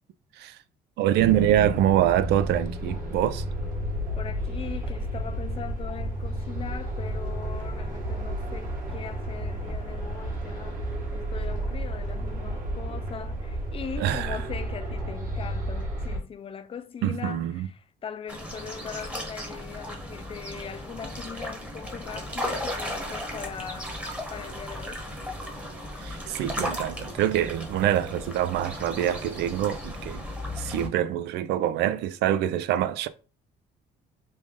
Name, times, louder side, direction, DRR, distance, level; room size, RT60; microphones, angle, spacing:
voice 1, 1.0-3.4 14.0-14.4 17.0-17.7 26.0-30.2 30.6-33.1, right 11 dB, 80° right, 0.4 m, -25 dB
sound 1, 1.1-16.2, right 1 dB, 50° right, 1.6 m, -32 dB
voice 2, 4.2-10.8 11.1-23.9 24.3-25.0, left 7 dB, 35° left, 0.4 m, -40 dB
sound 2, 18.3-30.9, left 1 dB, 10° right, 1.0 m, -36 dB
3.3 x 2.6 x 3.6 m
cardioid pair, 110°, 17 cm